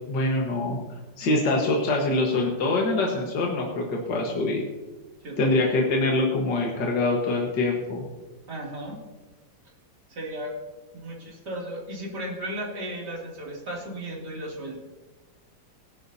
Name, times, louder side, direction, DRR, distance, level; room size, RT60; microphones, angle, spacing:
voice 1, 0.1-0.8 1.2-4.6 5.4-8.0, left 2 dB, 65° left, -1 dB, 2.1 m, -24 dB
voice 2, 5.2-5.8 8.5-9.0 10.1-10.6 10.9-14.8, right 1 dB, 60° right, -3 dB, 3.4 m, -35 dB
18.5 x 11.0 x 2.8 m, 1.2 s
omnidirectional pair, 2.0 m